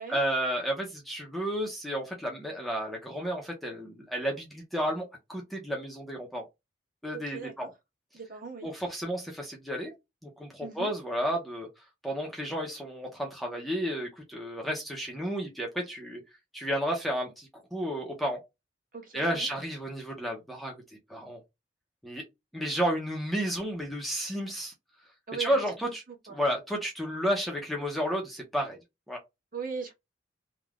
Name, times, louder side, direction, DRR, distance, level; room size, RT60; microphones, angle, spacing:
voice 1, 0.0-6.4 7.0-7.7 8.6-9.9 10.2-11.7 12.0-16.2 16.5-18.4 19.1-20.7 21.1-21.4 22.0-22.2 22.5-24.7 25.4-26.0 26.3-28.8 29.1-29.2, equal, ahead, 0.6 m, -32 dB
voice 2, 7.1-7.7 8.1-8.7 10.6-10.9 18.9-19.5 25.3-26.4 29.5-29.9, right 5 dB, 50° right, 1.2 m, -39 dB
3.3 x 2.2 x 2.3 m
head